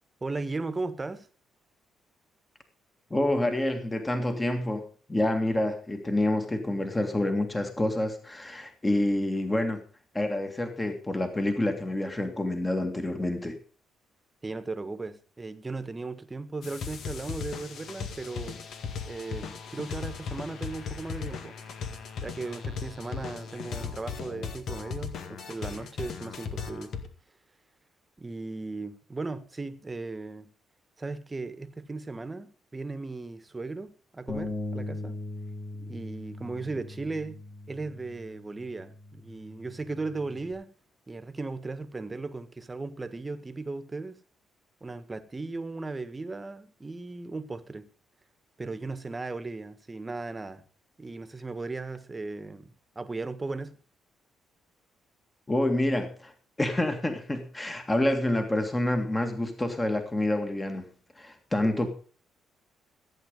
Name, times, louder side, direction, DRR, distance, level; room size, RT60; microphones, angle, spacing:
voice 1, 0.2-1.3 14.4-18.6 19.1-21.6 22.2-26.9 28.2-30.5 31.0-35.2 35.7-37.4 37.7-40.7 41.1-44.2 44.8-47.9 48.6-50.6 51.0-53.8 61.6-61.9, right 3 dB, 20° right, 11 dB, 1.5 m, -37 dB
voice 2, 3.1-9.8 10.1-13.6 55.5-56.3 56.6-60.9 61.2-61.9, left 1 dB, 15° left, 6 dB, 2.0 m, -28 dB
sound 1, 16.6-27.1, left 6 dB, 65° left, 1.9 m, -37 dB
Bass guitar, 34.3-40.5, left 2 dB, 45° left, 5.6 m, -40 dB
15.5 x 8.8 x 5.3 m, 0.40 s
cardioid pair, 90°, 0 cm